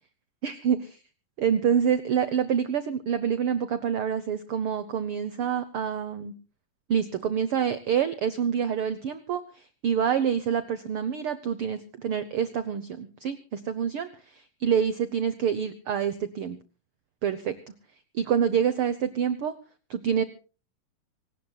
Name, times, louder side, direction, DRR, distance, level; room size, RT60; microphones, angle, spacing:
voice 1, 0.4-0.8 1.4-6.3 6.9-16.6 17.2-17.6 18.1-19.5 19.9-20.2, right 8 dB, 85° right, 13 dB, 1.2 m, -27 dB
26.0 x 18.5 x 2.3 m, 0.35 s
omnidirectional pair, 3.8 m